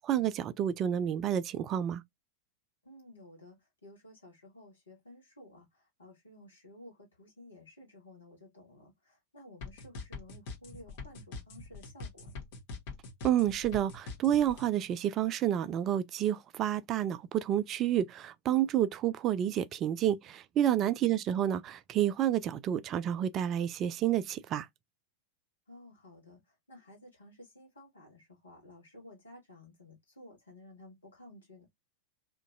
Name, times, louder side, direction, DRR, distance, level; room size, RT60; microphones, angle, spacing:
voice 1, 0.0-2.0 13.2-24.7, right 11 dB, 30° right, 0.3 m, -29 dB
voice 2, 2.8-12.4 21.0-21.4 25.7-31.7, left 1 dB, 75° left, 1.6 m, -54 dB
sound 1, 9.6-14.7, left 3 dB, 50° left, 0.9 m, -43 dB
2.9 x 2.6 x 2.5 m
figure-of-eight pair, 90°, 0 cm